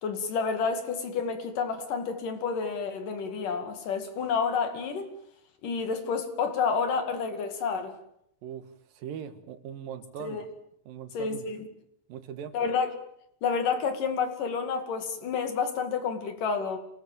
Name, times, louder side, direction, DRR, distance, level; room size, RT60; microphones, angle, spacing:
voice 1, 0.0-5.1 5.6-7.9 10.2-10.4 11.1-11.6 12.5-12.9 13.4-16.8, left 5 dB, 70° left, 3.9 m, -29 dB
voice 2, 8.4-10.4 10.9-11.5 12.1-12.6, right 8 dB, 85° right, 3.3 m, -40 dB
27.0 x 19.0 x 7.5 m
omnidirectional pair, 3.9 m